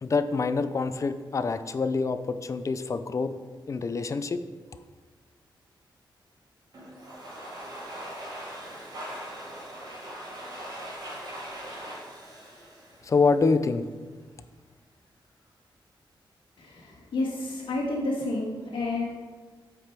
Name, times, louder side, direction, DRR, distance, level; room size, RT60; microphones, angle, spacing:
voice 1, 0.0-3.3 3.7-4.4 13.0-13.8, left 4 dB, 35° left, 11 dB, 0.4 m, -26 dB
Domestic sounds home sounds, 6.7-13.6, right 1 dB, 50° right, 2.3 m, -41 dB
voice 2, 16.6-19.0, left 2 dB, 75° left, -5 dB, 1.4 m, -30 dB
7.7 x 5.0 x 4.6 m, 1.4 s
wide cardioid pair, 110°, 9 cm